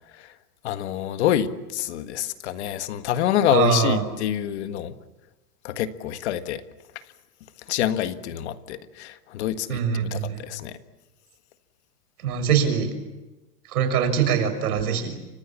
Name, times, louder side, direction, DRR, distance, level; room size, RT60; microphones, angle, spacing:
voice 1, 0.6-4.9 5.6-6.6 7.7-9.8 10.1-10.8, left 11 dB, 40° left, 10 dB, 1.5 m, -26 dB
voice 2, 3.5-4.0 9.7-10.4 12.2-12.9 13.7-15.1, right 7 dB, 65° right, 9 dB, 6.2 m, -23 dB
30.0 x 26.0 x 7.3 m, 1.1 s
supercardioid pair, 180°, 49 cm